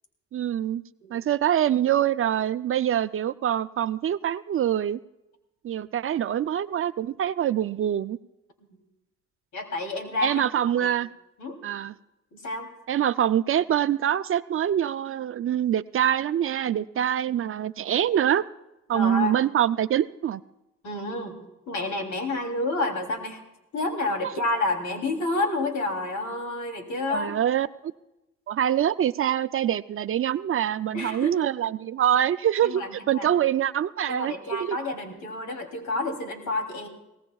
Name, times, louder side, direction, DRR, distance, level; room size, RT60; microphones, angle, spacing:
voice 1, 0.3-0.8 1.1-5.0 5.6-8.2 10.2-11.1 11.6-11.9 12.9-18.4 18.9-20.4 24.2-24.3 27.1-27.9 28.5-34.8, right 10 dB, 45° right, 14 dB, 0.4 m, -25 dB
voice 2, 9.5-10.4 10.8-10.9 11.4-11.6 12.3-12.7 18.9-19.4 20.8-21.4 21.7-23.4 23.7-27.3 30.9-31.5 32.6-33.3 34.1-36.9, left 2 dB, 75° left, 3 dB, 3.1 m, -29 dB
23.5 x 18.0 x 2.3 m, 0.94 s
cardioid pair, 90°, 30 cm